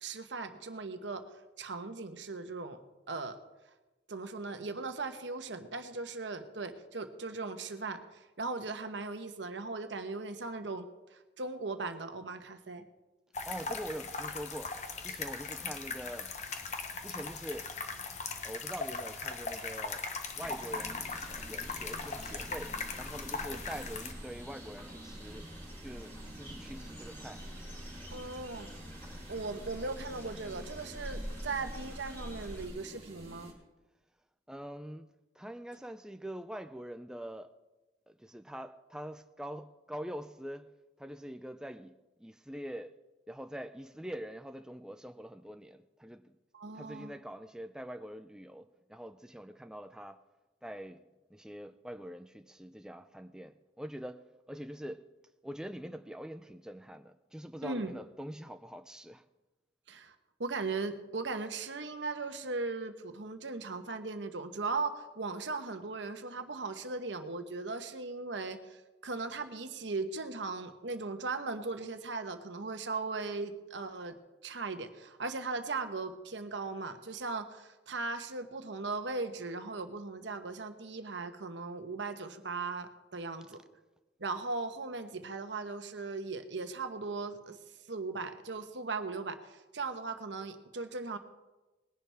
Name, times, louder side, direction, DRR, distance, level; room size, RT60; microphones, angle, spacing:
voice 1, 0.0-1.2 1.6-2.8 3.1-3.4 4.1-10.9 11.1-12.8 23.5-23.6 28.1-28.7 29.3-33.5 46.5-47.1 57.6-57.9 59.9-60.1 60.4-74.2 74.4-83.6 84.2-87.6 87.9-91.2, right 3 dB, 85° right, 1.1 m, -38 dB
sound 1, 13.3-24.1, left 4 dB, 40° left, 1.1 m, -39 dB
voice 2, 13.5-14.8 15.0-16.3 17.0-17.7 18.4-20.0 20.3-25.5 25.8-27.4 34.5-35.1 35.4-37.5 38.1-40.7 41.0-43.0 43.3-46.3 46.7-50.2 50.6-51.0 51.3-55.1 55.4-59.2, equal, 5° right, 0.4 m, -44 dB
sound 2, 20.4-33.5, right 1 dB, 30° right, 3.4 m, -50 dB
sound 3, 21.2-32.7, equal, 15° left, 3.9 m, -46 dB
20.5 x 11.0 x 3.5 m
head